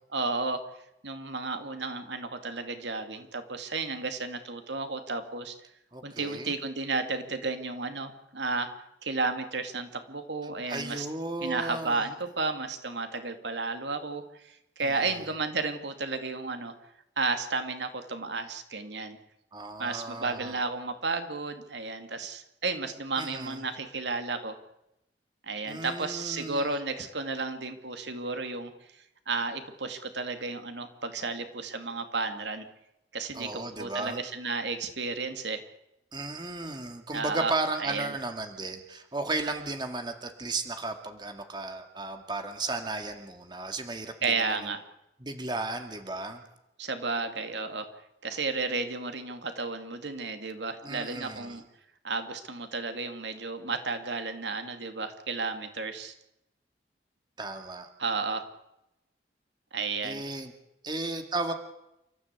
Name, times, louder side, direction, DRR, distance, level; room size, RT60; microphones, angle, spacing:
voice 1, 0.1-0.6 1.0-5.5 6.0-8.7 9.0-11.1 11.4-16.7 17.2-19.2 19.8-24.6 25.4-28.7 29.3-32.6 33.1-35.6 37.1-37.5 37.8-38.1 44.2-44.8 46.8-47.9 48.2-51.6 52.0-56.1 58.0-58.4 59.7-60.2, right 3 dB, 80° right, 7 dB, 2.5 m, -32 dB
voice 2, 5.9-6.6 10.7-12.0 14.8-14.9 19.5-20.6 23.2-23.6 25.7-26.7 33.3-34.2 36.1-44.7 45.2-46.4 50.8-51.6 57.4-57.9 60.0-60.5 60.8-61.5, right 2 dB, 25° right, 6 dB, 2.1 m, -35 dB
29.0 x 14.5 x 8.4 m, 0.86 s
head